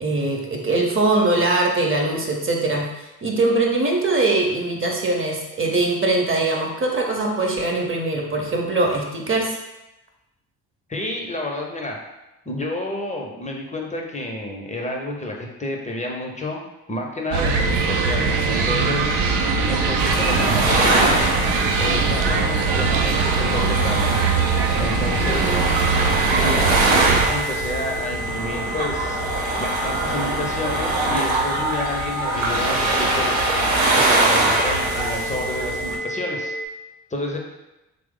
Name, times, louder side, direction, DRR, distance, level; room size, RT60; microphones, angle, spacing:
voice 1, 0.0-9.5 25.2-25.7, right 2 dB, 25° right, 0 dB, 0.7 m, -22 dB
voice 2, 10.9-12.0 12.5-16.6 16.9-19.1 19.6-21.3 21.8-24.2 24.8-25.6 26.3-29.2 29.6-33.4 34.0-36.6 37.1-37.4, left 1 dB, 15° left, 0 dB, 0.6 m, -30 dB
sound 1, 17.3-27.3, right 5 dB, 60° right, 0.5 m, -22 dB
sound 2, 17.5-36.7, left 1 dB, 60° left, 0.6 m, -31 dB
sound 3, 20.0-36.0, right 2 dB, 75° right, 0.9 m, -23 dB
3.0 x 2.0 x 3.6 m, 0.97 s
hypercardioid pair, 50°, 46 cm